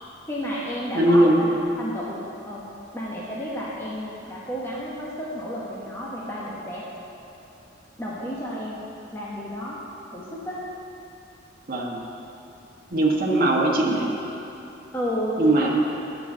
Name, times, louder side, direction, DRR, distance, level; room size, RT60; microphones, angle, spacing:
voice 1, 0.3-1.5 1.8-2.2 2.4-2.6 2.9-6.9 8.0-9.8 10.1-10.6 14.9-15.4, equal, 15° left, -7 dB, 1.1 m, -31 dB
voice 2, 0.9-1.5 11.7-12.0 12.9-14.1 15.4-15.7, right 1 dB, 50° right, -3 dB, 1.2 m, -20 dB
10.0 x 5.5 x 7.2 m, 2.9 s
head